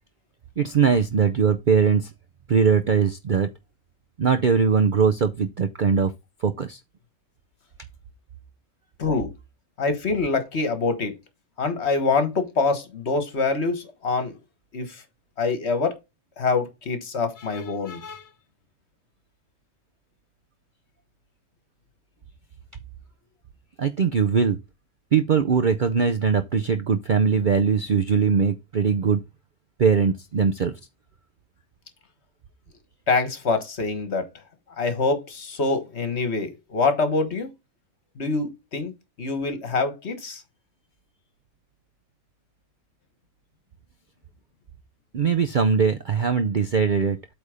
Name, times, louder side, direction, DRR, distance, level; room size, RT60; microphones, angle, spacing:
voice 1, 0.6-2.1 2.5-3.5 4.2-6.1 6.4-6.8 23.8-24.6 25.1-29.2 29.8-30.7 45.1-47.2, right 6 dB, 50° right, 0.6 m, -21 dB
voice 2, 9.0-9.3 9.8-11.2 11.6-14.4 14.7-15.0 15.4-16.0 16.4-18.3 33.1-34.3 34.8-37.5 38.2-40.4, left 4 dB, 50° left, 1.5 m, -25 dB
8.3 x 3.5 x 5.0 m
omnidirectional pair, 1.5 m